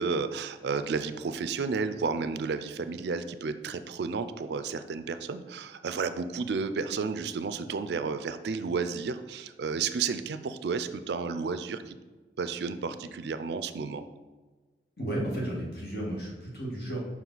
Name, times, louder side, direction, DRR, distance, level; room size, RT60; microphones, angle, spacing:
voice 1, 0.0-12.0 12.4-14.1, right 5 dB, 70° right, 11 dB, 0.4 m, -32 dB
voice 2, 15.0-17.0, right 1 dB, 60° left, -4 dB, 1.8 m, -33 dB
5.7 x 4.5 x 4.0 m, 1.3 s
head